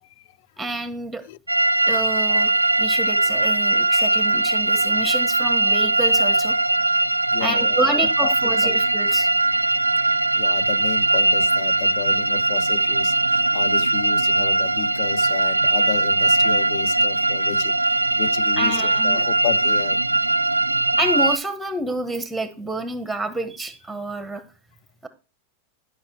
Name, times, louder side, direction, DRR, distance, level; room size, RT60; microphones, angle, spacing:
voice 1, 0.0-0.4 1.3-1.4 2.9-3.0 7.3-8.8 9.9-20.0, left 16 dB, 50° left, 0.4 m, -32 dB
voice 2, 0.6-1.2 1.8-2.5 2.8-6.6 7.4-9.3 18.6-19.2 21.0-24.4 25.0-25.1, right 2 dB, ahead, 1.4 m, -28 dB
sound 1, 1.5-21.4, right 2 dB, 85° right, 0.4 m, -20 dB
12.0 x 5.8 x 4.5 m
figure-of-eight pair, 90°, 0 cm